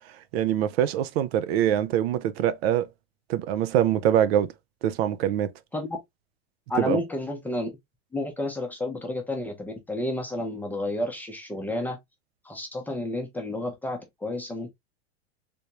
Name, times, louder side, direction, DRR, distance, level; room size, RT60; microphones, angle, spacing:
voice 1, 0.3-2.9 3.3-4.5 4.8-5.5 6.8-7.0, right 10 dB, 65° right, 0.5 m, -24 dB
voice 2, 6.7-7.7 8.1-12.0 12.4-14.7, left 1 dB, 5° left, 0.6 m, -31 dB
3.4 x 2.6 x 2.8 m
supercardioid pair, 145°, 34 cm